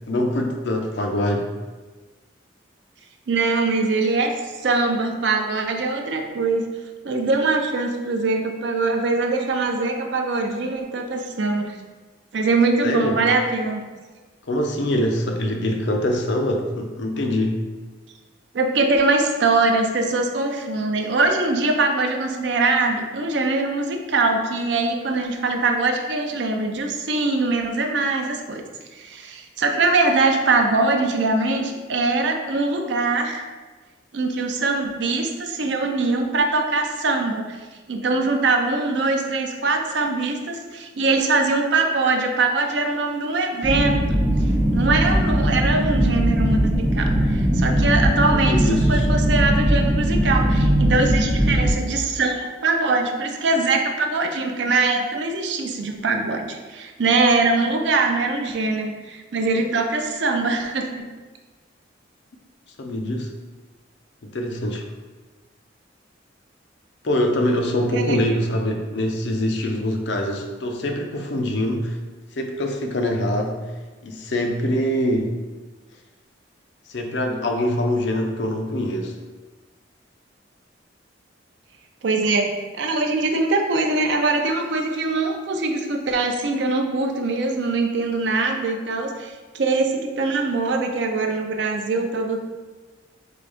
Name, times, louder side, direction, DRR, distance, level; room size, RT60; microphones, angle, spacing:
voice 1, 0.1-1.5 12.8-13.2 14.5-17.6 48.5-49.1 62.8-63.3 64.2-64.8 67.0-72.0 72.4-73.6 74.0-75.4 76.9-79.1, left 1 dB, 65° left, 3 dB, 0.5 m, -24 dB
voice 2, 3.3-6.7 7.0-11.8 12.3-13.9 18.5-28.6 28.9-33.4 34.1-37.6 37.9-44.0 44.7-61.1 67.9-68.4 82.0-92.5, right 3 dB, 65° right, 4 dB, 0.5 m, -22 dB
sound 1, 43.6-51.7, equal, 10° right, 0.6 m, -19 dB
3.8 x 3.4 x 3.4 m, 1.3 s
head